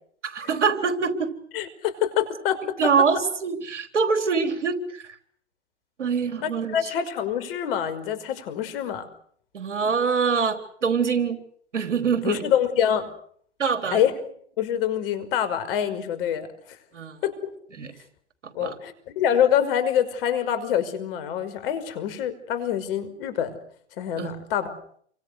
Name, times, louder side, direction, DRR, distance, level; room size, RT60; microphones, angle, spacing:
voice 1, 0.2-1.3 2.8-5.2 6.0-6.8 9.5-11.4 11.7-12.4 13.6-14.0 16.9-17.2 17.8-17.9 18.4-18.8 24.2-24.3, right 5 dB, 80° right, 7 dB, 4.0 m, -24 dB
voice 2, 1.5-2.9 6.4-9.1 12.2-13.1 13.9-14.1 14.6-16.5 17.2-17.5 18.5-23.6 24.0-24.8, left 9 dB, 50° left, 11 dB, 5.6 m, -25 dB
29.5 x 25.0 x 6.6 m, 0.62 s
hypercardioid pair, 110°, 35 cm